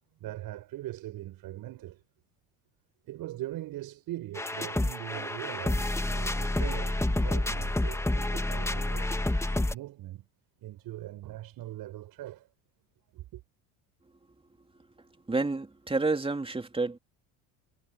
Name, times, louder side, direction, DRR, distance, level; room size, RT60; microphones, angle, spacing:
voice 1, 0.2-2.0 3.0-10.3 10.6-12.5 13.1-13.4, right 15 dB, 60° right, 5.8 m, -41 dB
sound 1, 4.3-9.7, left 2 dB, 5° left, 1.5 m, -29 dB
voice 2, 15.0-17.0, right 3 dB, 15° right, 2.9 m, -30 dB
supercardioid pair, 85°, 40 cm